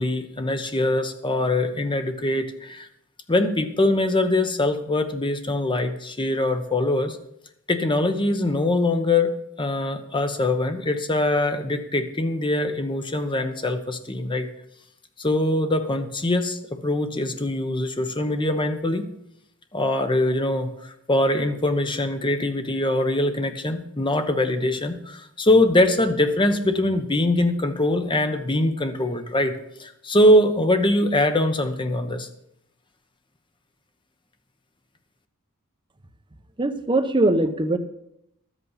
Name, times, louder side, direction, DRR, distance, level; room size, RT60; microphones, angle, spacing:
voice 1, 0.0-2.9 3.3-7.2 7.7-9.3 9.6-14.5 15.2-19.1 19.7-32.3, left 1 dB, 20° left, 7 dB, 1.0 m, -23 dB
voice 2, 36.6-37.8, right 2 dB, 20° right, 7 dB, 0.8 m, -21 dB
12.5 x 8.2 x 5.7 m, 0.79 s
head